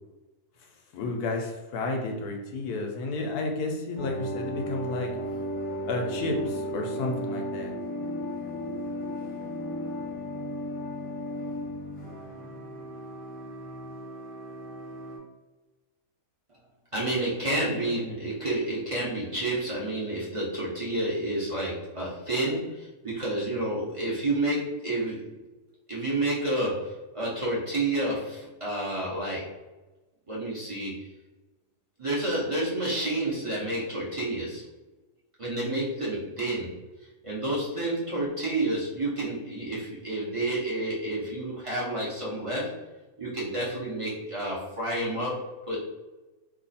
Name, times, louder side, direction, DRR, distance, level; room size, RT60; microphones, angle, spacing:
voice 1, 0.9-5.1 5.9-7.8, left 3 dB, 75° left, 2 dB, 1.2 m, -31 dB
sound 1, 4.0-15.2, equal, 30° left, 0.6 m, -35 dB
voice 2, 16.9-25.3 25.9-29.5 30.3-31.0 32.0-34.6 35.4-36.8 37.2-42.7 43.2-45.8, right 1 dB, 30° right, -7 dB, 0.6 m, -30 dB
3.0 x 2.4 x 4.0 m, 1.1 s
omnidirectional pair, 1.7 m